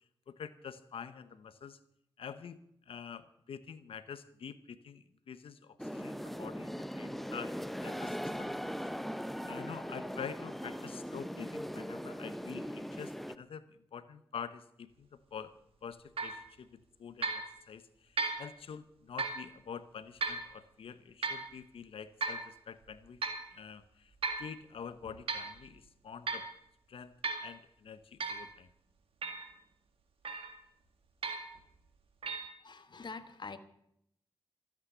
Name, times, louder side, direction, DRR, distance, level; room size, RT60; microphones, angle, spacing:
voice 1, 0.3-1.8 2.2-8.5 9.4-15.5 15.8-23.2 23.5-26.5 26.9-27.1 27.4-28.7, left 7 dB, 80° left, 13 dB, 0.9 m, -47 dB
sound 1, 5.8-13.4, equal, ahead, 0.8 m, -40 dB
sound 2, 16.2-16.4 17.2-17.5 18.2-18.5 19.2-19.4 20.2-20.4 21.2-21.5 22.2-22.5 23.2-23.5 24.2-24.5 25.0-25.5 26.3-26.5 27.2-27.5 28.2-28.4 29.2-29.5 30.2-30.6 31.2-31.6 32.2-32.4, right 4 dB, 85° right, 1.8 m, -35 dB
voice 2, 32.6-33.6, left 4 dB, 55° left, 11 dB, 1.4 m, -45 dB
13.0 x 8.7 x 9.2 m, 0.75 s
cardioid pair, 40°, 9 cm